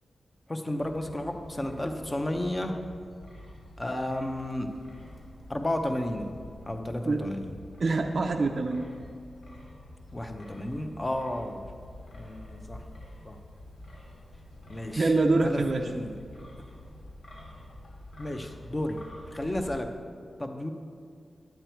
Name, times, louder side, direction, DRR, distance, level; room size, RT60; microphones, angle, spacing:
voice 1, 0.5-2.8 3.8-4.7 5.5-6.3 6.6-7.5 10.1-11.6 12.1-12.9 13.2-13.4 14.7-15.1 15.4-16.2 18.2-19.0 19.3-19.9 20.4-20.7, left 1 dB, 15° left, 5 dB, 0.7 m, -32 dB
Wind, 0.8-19.8, left 1 dB, 85° left, 2.8 m, -48 dB
voice 2, 7.8-8.9 15.0-15.9, right 3 dB, 45° right, 3 dB, 0.5 m, -25 dB
10.5 x 9.1 x 4.5 m, 2.2 s
wide cardioid pair, 175°, 0 cm